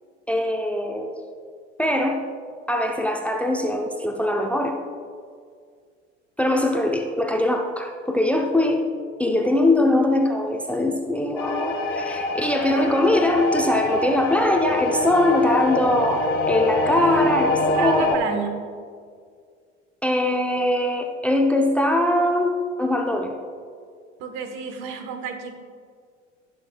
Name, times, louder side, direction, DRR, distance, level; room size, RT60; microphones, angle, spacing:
voice 1, 0.3-1.1 1.8-2.2 2.7-4.8 6.4-8.9 9.2-18.1 20.0-23.3, left 1 dB, 5° left, 3 dB, 0.7 m, -22 dB
sound 1, 11.4-18.1, left 2 dB, 30° left, 1.9 m, -25 dB
voice 2, 17.8-18.6 24.2-25.5, right 6 dB, 55° right, 6 dB, 1.3 m, -30 dB
18.0 x 6.4 x 2.3 m, 2.1 s
figure-of-eight pair, 70°, 35 cm